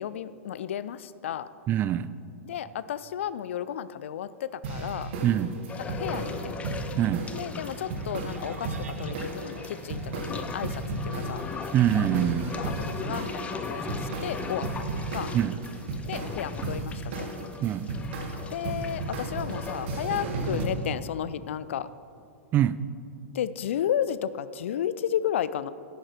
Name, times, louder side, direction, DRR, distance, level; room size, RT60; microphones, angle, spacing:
voice 1, 0.0-1.5 2.4-5.1 5.9-6.6 7.3-11.4 12.6-15.3 16.0-17.3 18.5-21.9 23.3-25.7, left 10 dB, 65° left, 16 dB, 0.4 m, -33 dB
voice 2, 1.7-2.1 5.2-5.6 7.0-7.3 11.7-12.6 15.3-15.6 17.6-18.0 22.5-22.8, right 11 dB, 25° right, 16 dB, 0.3 m, -24 dB
sound 1, 4.6-20.6, right 2 dB, 55° right, 1.5 m, -35 dB
sound 2, 5.7-20.9, left 5 dB, 15° left, 0.7 m, -40 dB
sound 3, 7.0-15.2, right 5 dB, 75° right, 0.7 m, -49 dB
11.0 x 8.8 x 4.4 m, 2.6 s
figure-of-eight pair, 100°, 7 cm